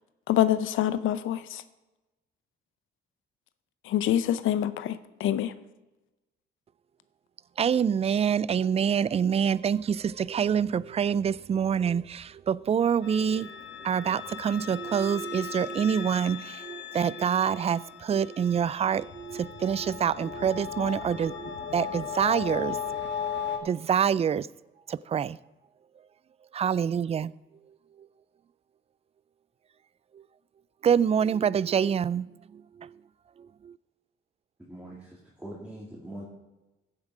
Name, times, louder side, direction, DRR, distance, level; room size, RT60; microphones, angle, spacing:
voice 1, 0.3-1.6 3.9-5.5, left 11 dB, 80° left, 0.7 m, -26 dB
voice 2, 7.6-23.0 23.6-24.5 24.9-25.4 26.5-27.3 30.1-30.2 30.8-32.9 33.6-33.8, right 8 dB, 30° right, 0.3 m, -26 dB
sound 1, 13.0-23.6, left 7 dB, 65° left, 1.7 m, -37 dB
voice 3, 34.6-36.3, right 1 dB, 5° right, 2.7 m, -43 dB
15.5 x 7.1 x 4.9 m
cardioid pair, 90°, 20 cm